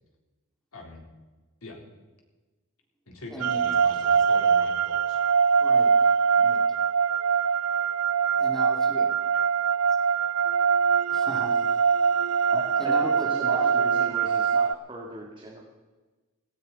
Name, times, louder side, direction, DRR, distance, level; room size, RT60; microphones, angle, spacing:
voice 1, 0.7-1.0 1.6-1.8 3.1-5.2, left 2 dB, 70° left, 0 dB, 3.7 m, -43 dB
voice 2, 3.3-3.9 5.6-6.8 8.4-9.1 11.1-11.8 12.8-14.1, equal, ahead, -1 dB, 2.7 m, -38 dB
sound 1, 3.4-14.7, right 6 dB, 85° right, 0.4 m, -23 dB
voice 3, 12.5-15.6, right 1 dB, 20° right, -2 dB, 2.1 m, -37 dB
17.5 x 15.5 x 4.1 m, 1.2 s
head